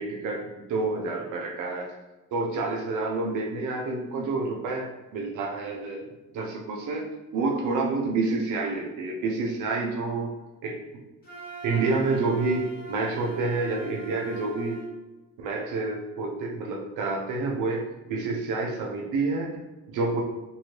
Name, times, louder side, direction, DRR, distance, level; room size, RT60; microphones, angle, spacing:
voice 1, 0.0-1.9 2.3-7.0 7.3-10.3 10.6-10.8 11.6-14.8 15.4-20.2, right 3 dB, 85° right, 0 dB, 0.7 m, -28 dB
Wind instrument woodwind instrument, 11.2-14.9, right 4 dB, 30° left, 1.0 m, -41 dB
2.7 x 2.7 x 3.0 m, 1.1 s
cardioid pair, 90°, 30 cm